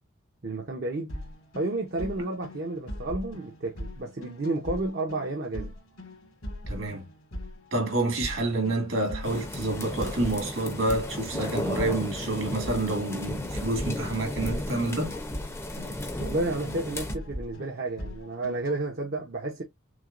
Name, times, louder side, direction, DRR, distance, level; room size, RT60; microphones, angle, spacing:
voice 1, 0.4-1.1 1.5-5.7 16.2-19.6, right 2 dB, 50° right, 0.7 m, -31 dB
sound 1, 1.1-18.8, equal, 75° left, 2.0 m, -40 dB
voice 2, 6.7-7.0 7.7-15.1, right 2 dB, 65° right, 1.9 m, -28 dB
sound 2, 9.2-17.2, left 1 dB, 15° left, 0.6 m, -35 dB
6.1 x 2.2 x 2.5 m
head